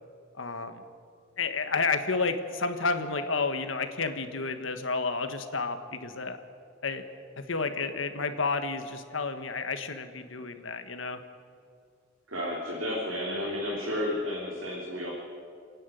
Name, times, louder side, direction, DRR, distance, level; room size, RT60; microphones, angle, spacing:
voice 1, 0.4-0.8 1.4-6.4 6.8-7.0 7.4-11.2, left 4 dB, 70° left, 8 dB, 1.5 m, -31 dB
voice 2, 12.3-15.1, left 1 dB, 70° right, -4 dB, 3.4 m, -32 dB
28.5 x 10.0 x 9.3 m, 2.2 s
head